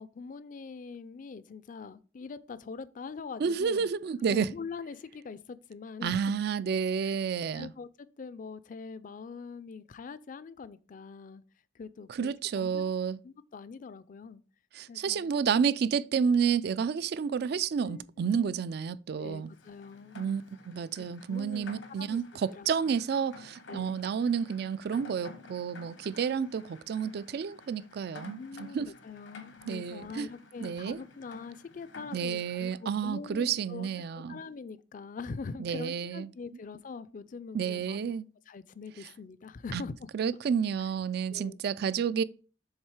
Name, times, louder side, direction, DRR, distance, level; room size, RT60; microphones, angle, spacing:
voice 1, 0.0-3.9 4.2-6.2 7.0-7.1 7.5-11.4 11.7-12.8 13.2-14.4 14.9-15.3 17.8-18.3 19.2-20.2 21.0-21.7 22.0-22.2 22.6-23.0 23.7-24.0 28.4-33.9 34.1-38.1 38.5-40.1 40.8-40.9 41.3-41.6, left 4 dB, 45° left, 0.4 m, -43 dB
voice 2, 3.4-4.5 6.0-7.7 12.2-13.2 14.8-19.5 20.2-28.9 29.7-30.3 30.6-31.0 32.1-34.4 35.6-36.3 37.5-38.3 39.7-39.8 40.1-42.2, right 6 dB, 60° right, 0.3 m, -30 dB
Rain, 19.5-32.8, left 3 dB, 85° left, 1.1 m, -51 dB
7.3 x 3.6 x 4.7 m
head